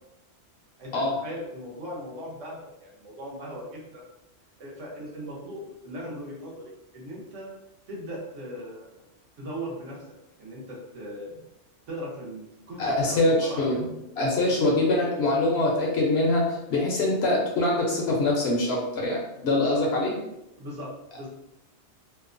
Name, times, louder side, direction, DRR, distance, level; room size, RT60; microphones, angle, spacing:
voice 1, 0.8-4.0 4.6-7.5 7.9-9.0 9.4-10.0 10.4-11.4 11.9-13.8 19.5-19.8 20.6-21.3, equal, 75° right, -4 dB, 1.1 m, -38 dB
voice 2, 12.8-13.9 14.2-20.1, left 2 dB, 65° left, -1 dB, 0.7 m, -24 dB
2.8 x 2.1 x 2.4 m, 0.87 s
omnidirectional pair, 1.3 m